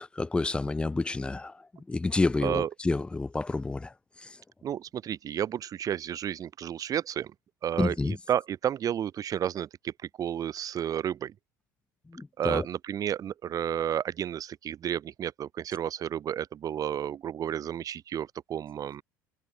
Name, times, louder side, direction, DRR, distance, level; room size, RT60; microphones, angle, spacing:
voice 1, 0.0-1.5 1.9-3.9 7.8-8.2 12.1-12.6, left 3 dB, 10° left, 0.4 m, -29 dB
voice 2, 4.6-7.3 7.6-9.9 10.2-11.3 12.4-19.0, right 10 dB, 35° right, 0.7 m, -31 dB
figure-of-eight pair, 65°, 10 cm